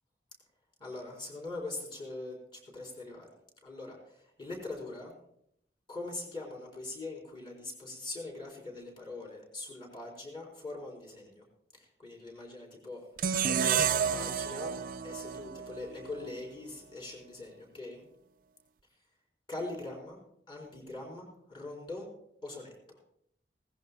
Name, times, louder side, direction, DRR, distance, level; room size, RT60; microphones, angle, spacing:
voice 1, 0.8-3.3 3.6-4.0 4.4-5.1 5.9-11.4 11.7-13.0 13.5-14.7 15.0-18.0 19.5-20.2 20.5-22.1 22.4-22.7, left 2 dB, 30° left, -2 dB, 4.0 m, -42 dB
sound 1, 13.2-16.4, right 8 dB, 50° right, 0.4 m, -30 dB
20.0 x 17.5 x 2.3 m, 0.72 s
head